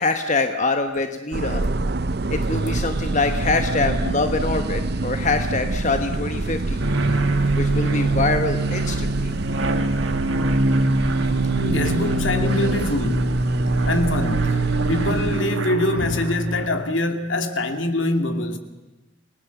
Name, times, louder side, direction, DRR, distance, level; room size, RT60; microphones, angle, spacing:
voice 1, 0.0-1.6 2.3-7.2 7.5-9.3 16.0-16.2, left 3 dB, 35° left, 1.1 m, -24 dB
sound 1, 1.3-15.4, right 2 dB, 50° right, 0.7 m, -27 dB
sound 2, 6.8-16.7, right 2 dB, 70° right, 1.9 m, -23 dB
voice 2, 11.6-13.4 13.8-14.6 14.9-18.6, left 1 dB, 70° left, 2.4 m, -24 dB
29.5 x 19.0 x 7.1 m
head